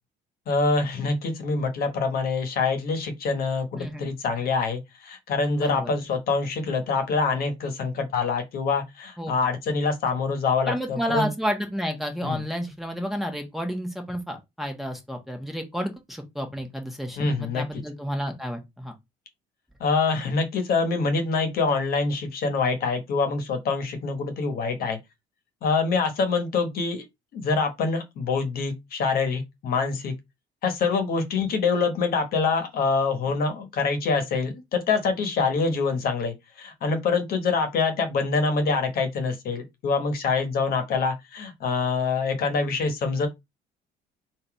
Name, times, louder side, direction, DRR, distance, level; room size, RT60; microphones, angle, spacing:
voice 1, 0.5-11.3 12.2-12.4 17.2-17.6 19.8-25.0 25.6-27.0 27.3-30.1 30.6-43.3, left 4 dB, 60° left, 1.2 m, -25 dB
voice 2, 3.7-4.1 5.5-5.9 9.2-9.3 10.7-18.9, equal, ahead, 1.2 m, -31 dB
3.8 x 2.7 x 4.7 m
cardioid pair, 110°, 17 cm